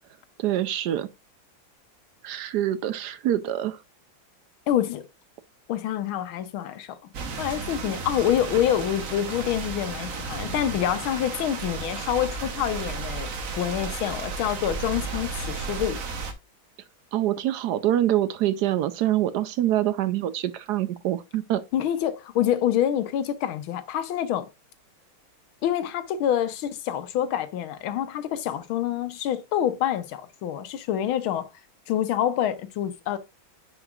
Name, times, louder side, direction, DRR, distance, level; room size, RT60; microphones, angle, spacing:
voice 1, 0.4-1.1 2.2-3.8 17.1-21.6, right 12 dB, 75° right, 0.9 m, -25 dB
voice 2, 4.7-5.0 5.7-7.0 7.4-16.0 21.7-24.5 25.6-31.5 31.9-33.2, left 10 dB, 80° left, 1.6 m, -26 dB
sound 1, 7.1-16.3, right 4 dB, 50° right, 1.2 m, -33 dB
9.8 x 4.9 x 2.4 m
omnidirectional pair, 2.3 m